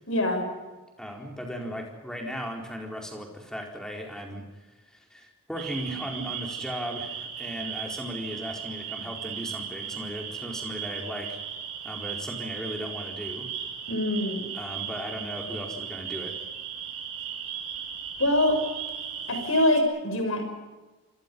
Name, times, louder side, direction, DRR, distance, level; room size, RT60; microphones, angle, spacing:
voice 1, 0.1-0.4 13.9-14.5 18.2-18.6 19.3-20.4, left 1 dB, 65° left, 4 dB, 6.6 m, -24 dB
voice 2, 1.0-4.5 4.9-11.4 11.8-13.5 14.5-16.4, equal, 5° left, 1 dB, 4.4 m, -37 dB
sound 1, 5.6-19.8, right 8 dB, 75° right, 5.0 m, -37 dB
27.5 x 25.5 x 5.5 m, 1.2 s
head